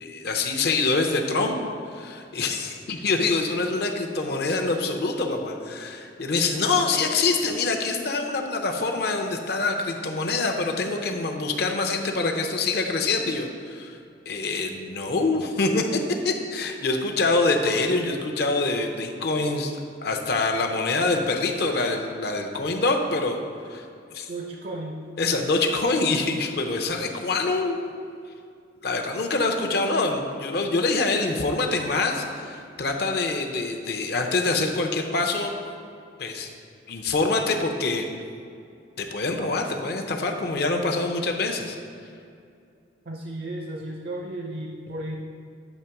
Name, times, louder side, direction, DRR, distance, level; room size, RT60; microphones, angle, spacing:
voice 1, 0.0-1.6 1.9-14.0 14.3-23.4 23.7-23.9 24.1-24.3 25.2-27.8 28.8-35.5 36.2-36.5 36.9-38.1 39.0-41.8, left 3 dB, 55° left, 3 dB, 0.6 m, -25 dB
voice 2, 24.3-25.0 43.1-45.2, right 1 dB, 55° right, 2 dB, 0.5 m, -34 dB
8.3 x 3.0 x 5.7 m, 2.4 s
head